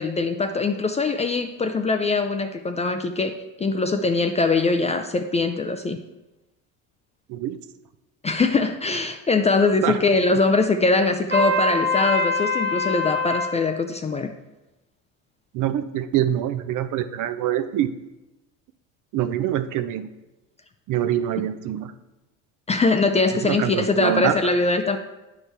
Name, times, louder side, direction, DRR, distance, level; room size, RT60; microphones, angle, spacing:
voice 1, 0.0-6.0 8.2-14.3 22.7-25.0, left 3 dB, 20° left, 6 dB, 0.3 m, -22 dB
Trumpet, 11.3-13.6, left 2 dB, 25° right, 0.8 m, -24 dB
voice 2, 15.5-17.9 19.1-20.1 20.9-21.9 23.3-24.4, right 11 dB, 55° right, 11 dB, 0.6 m, -25 dB
9.6 x 4.5 x 3.3 m, 1.0 s
supercardioid pair, 105°, 37 cm